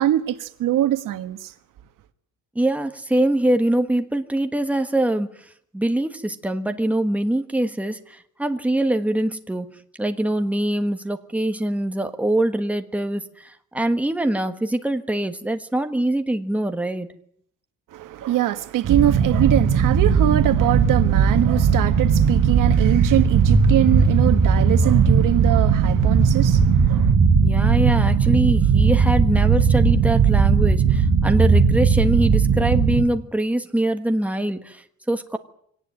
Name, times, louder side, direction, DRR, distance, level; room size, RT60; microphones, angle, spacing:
voice 1, 0.0-1.5 17.9-27.1, right 12 dB, 85° right, 1.5 m, -23 dB
voice 2, 2.5-5.3 5.7-9.7 10.0-17.1 27.4-35.4, right 1 dB, 5° right, 1.3 m, -23 dB
sound 1, 18.8-33.0, right 6 dB, 65° right, 4.5 m, -17 dB
24.5 x 18.0 x 9.4 m
cardioid pair, 170°, 31 cm